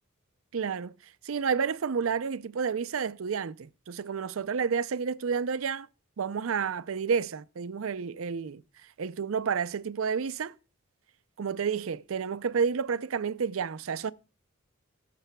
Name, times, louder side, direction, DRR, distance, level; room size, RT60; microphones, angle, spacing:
voice 1, 0.5-0.9 1.2-5.9 6.2-8.6 9.0-10.5 11.4-14.1, right 6 dB, 75° right, 0.5 m, -30 dB
19.0 x 6.8 x 2.2 m
head